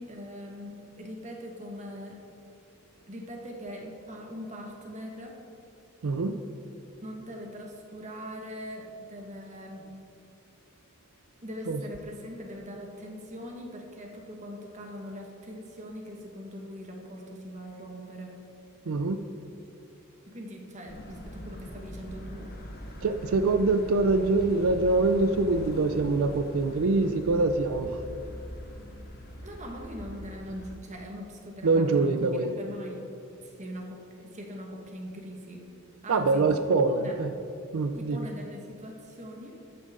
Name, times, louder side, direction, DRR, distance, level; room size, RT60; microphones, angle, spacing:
voice 1, 0.0-2.2 3.1-5.4 7.0-9.9 11.4-18.4 20.3-22.5 29.4-32.3 32.6-33.0 33.4-35.6 36.0-36.6 37.0-37.2 37.9-39.6, equal, 35° right, 1 dB, 1.5 m, -41 dB
voice 2, 6.0-6.4 11.7-11.8 18.9-19.2 23.0-28.0 31.6-32.5 36.1-37.3 37.7-38.2, right 3 dB, 90° right, 9 dB, 0.5 m, -24 dB
sound 1, 20.9-30.7, equal, 50° left, 1.4 m, -42 dB
13.0 x 9.2 x 3.7 m, 2.6 s
head